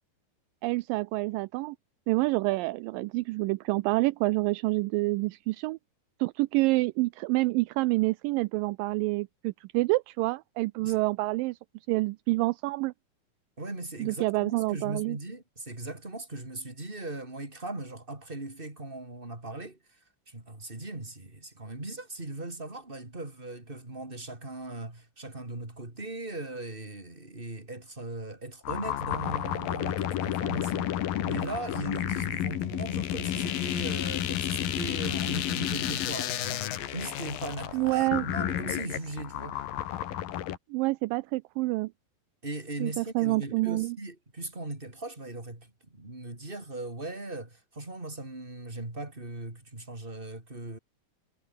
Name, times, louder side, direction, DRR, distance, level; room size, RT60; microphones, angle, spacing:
voice 1, 0.6-1.8 2.1-5.8 6.2-11.6 11.9-12.9 14.0-15.2 37.7-38.3 40.7-41.9 42.8-44.0, right 21 dB, 80° right, 2.2 m, -27 dB
voice 2, 13.6-20.0 20.3-31.0 31.2-36.7 36.9-39.6 42.4-50.8, right 2 dB, 15° right, 4.9 m, -39 dB
sound 1, 28.7-40.6, left 12 dB, 80° left, 3.4 m, -31 dB
omnidirectional pair, 4.1 m